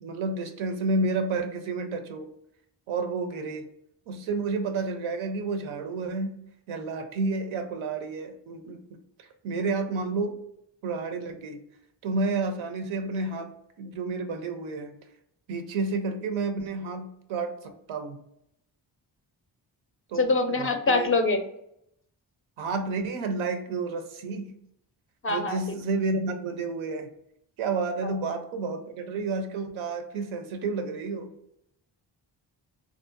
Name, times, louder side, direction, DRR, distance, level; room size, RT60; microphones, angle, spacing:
voice 1, 0.0-2.3 2.9-3.7 4.1-6.4 6.7-10.4 10.8-11.6 12.0-13.5 13.8-15.0 15.5-18.2 20.1-21.1 22.6-24.5 25.3-27.1 27.6-31.3, right 3 dB, 85° right, 6 dB, 0.5 m, -30 dB
voice 2, 20.2-21.4 25.2-25.6, left 3 dB, 30° left, 6 dB, 0.4 m, -24 dB
2.6 x 2.1 x 2.4 m, 0.76 s
cardioid pair, 45°, 47 cm